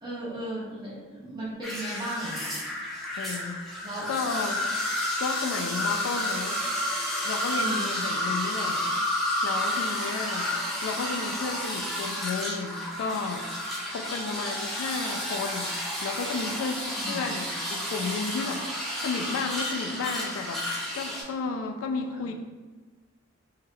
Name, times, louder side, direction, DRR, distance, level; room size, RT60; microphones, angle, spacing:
voice 1, 0.0-2.4 3.8-4.1 7.6-8.1 17.0-17.3 22.1-22.2, right 1 dB, 20° right, -8 dB, 0.9 m, -35 dB
sound 1, 1.6-21.2, left 1 dB, ahead, 0.4 m, -31 dB
voice 2, 3.2-4.8 5.2-6.7 7.2-8.8 9.4-10.5 10.8-13.5 13.9-18.6 19.0-20.6 20.9-22.3, left 4 dB, 75° left, 5 dB, 0.3 m, -33 dB
3.4 x 2.7 x 2.2 m, 1.4 s
head